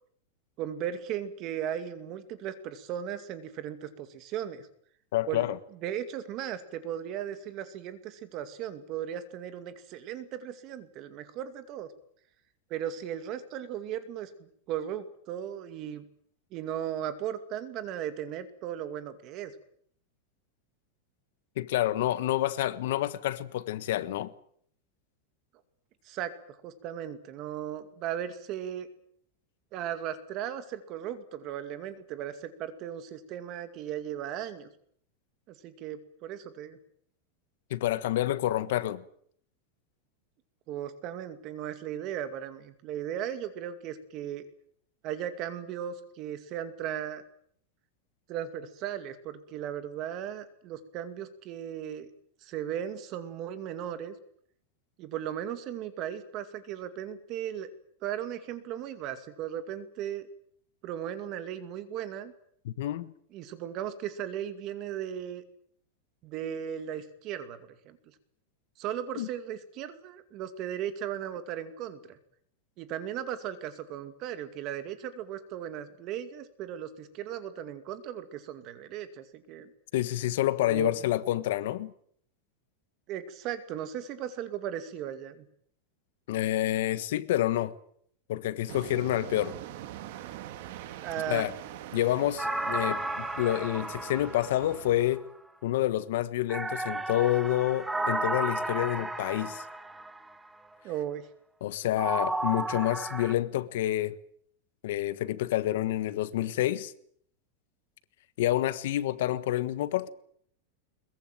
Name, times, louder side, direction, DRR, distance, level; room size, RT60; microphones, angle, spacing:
voice 1, 0.6-4.7 5.3-5.5 5.8-11.9 12.7-16.0 16.5-19.5 26.0-28.9 29.7-34.7 35.5-36.8 40.7-44.5 45.0-47.2 48.3-52.1 52.4-54.1 55.0-57.7 58.0-60.3 60.8-62.3 63.3-65.4 66.2-67.6 67.8-68.0 68.8-72.2 72.8-79.7 80.6-80.9 83.1-85.4 91.0-91.5 100.8-101.2, right 10 dB, 30° right, 2.4 m, -37 dB
voice 2, 5.1-5.6 21.6-24.3 37.7-39.0 62.6-63.1 69.2-69.3 79.9-81.9 86.3-87.7 88.3-89.5 91.3-91.5 91.9-95.2 95.6-99.6 101.6-104.1 104.8-106.9 108.4-110.1, left 14 dB, 60° left, 1.4 m, -28 dB
sound 1, 88.7-95.2, right 12 dB, 50° right, 2.3 m, -44 dB
sound 2, 92.4-95.2 96.5-100.3 102.0-103.3, right 2 dB, 5° right, 1.1 m, -33 dB
22.0 x 22.0 x 9.1 m
supercardioid pair, 175°, 0 cm